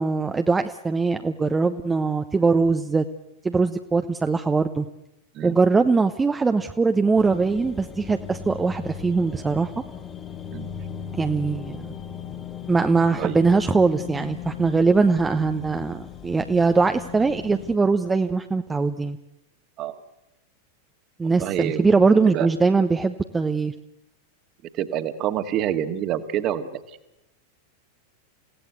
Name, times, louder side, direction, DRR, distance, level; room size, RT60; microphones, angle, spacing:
voice 1, 0.0-3.1 3.4-4.9 5.4-9.7 11.2-11.9 12.7-19.2 21.2-23.7, right 4 dB, 15° right, 7 dB, 1.0 m, -21 dB
sound 1, 7.1-17.8, left 8 dB, 20° left, 1.6 m, -37 dB
voice 2, 21.4-21.9 22.3-22.5 24.8-26.8, right 10 dB, 35° right, 9 dB, 2.0 m, -27 dB
29.0 x 17.0 x 8.2 m, 0.88 s
figure-of-eight pair, 90°, 0 cm